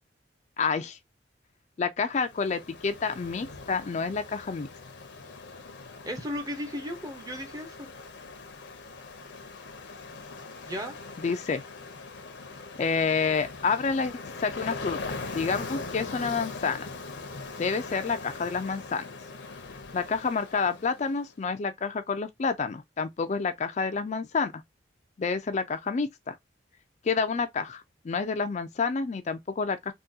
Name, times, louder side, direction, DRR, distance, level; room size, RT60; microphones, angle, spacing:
voice 1, 0.6-1.0 1.8-4.7 11.2-11.6 12.8-15.0 15.3-16.9 17.6-19.0 19.9-24.6 25.2-26.4 27.0-29.9, left 5 dB, 40° left, 0.3 m, -29 dB
Ocean, 2.1-21.2, left 3 dB, 70° left, 0.7 m, -41 dB
voice 2, 6.0-7.9 10.6-11.0, equal, 20° right, 0.7 m, -35 dB
3.6 x 2.3 x 2.6 m
head